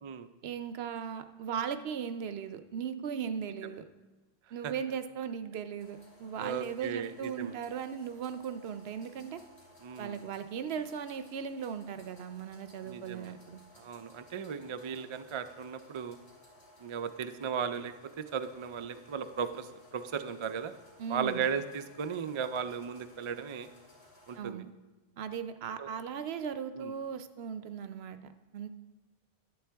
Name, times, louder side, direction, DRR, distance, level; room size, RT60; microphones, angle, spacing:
voice 1, 0.4-3.8 4.5-9.4 10.0-13.6 21.0-21.4 24.3-24.7 25.2-28.7, right 7 dB, 75° right, 10 dB, 0.9 m, -38 dB
sound 1, 5.8-24.4, left 1 dB, 85° left, 2.6 m, -59 dB
voice 2, 6.4-7.6 9.8-10.2 12.8-13.4 13.7-16.2 16.8-20.7 21.1-23.7 24.3-24.6 25.8-25.9 26.7-26.9, right 7 dB, 45° right, 10 dB, 0.4 m, -36 dB
11.5 x 8.5 x 3.4 m, 1.2 s
omnidirectional pair, 1.1 m